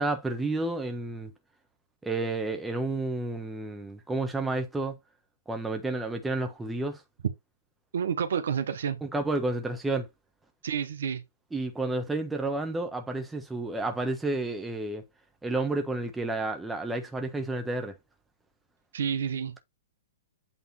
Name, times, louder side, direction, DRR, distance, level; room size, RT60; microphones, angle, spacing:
voice 1, 0.0-1.3 2.0-5.0 5.5-7.0 9.0-10.1 11.5-15.0 15.4-18.0, right 2 dB, 5° right, 1.4 m, -30 dB
voice 2, 7.9-9.0 10.6-11.2 18.9-19.6, right 7 dB, 65° right, 1.1 m, -29 dB
8.4 x 3.5 x 4.3 m
figure-of-eight pair, 110°, 0 cm